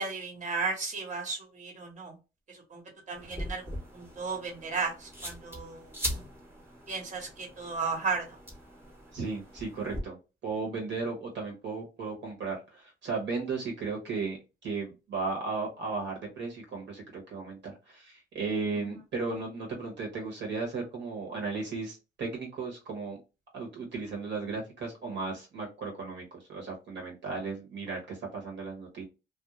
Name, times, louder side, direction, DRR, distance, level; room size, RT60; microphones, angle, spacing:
voice 1, 0.0-2.2 2.5-2.8 3.1-6.0 6.9-8.4 18.7-19.0, right 4 dB, 40° right, 1 dB, 1.1 m, -35 dB
sound 1, 3.2-10.0, equal, 10° right, 0.9 m, -41 dB
voice 2, 9.1-10.2 10.4-14.4 14.6-23.2 23.5-29.0, right 4 dB, 65° right, 0 dB, 1.0 m, -35 dB
2.4 x 2.1 x 3.0 m, 0.29 s
cardioid pair, 90°, 20 cm